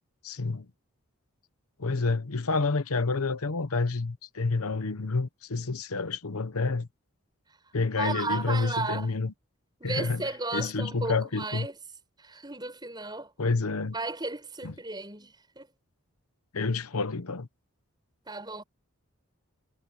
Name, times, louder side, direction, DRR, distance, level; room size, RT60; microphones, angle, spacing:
voice 1, 0.2-0.7 1.8-6.9 7.7-9.3 9.8-10.2 10.5-11.7 13.4-13.9 14.6-14.7 16.5-17.5, left 3 dB, 80° left, 0.9 m, -29 dB
voice 2, 8.0-9.1 9.8-11.8 12.2-13.3 13.9-15.7 18.3-18.6, right 3 dB, 20° right, 6.7 m, -34 dB
head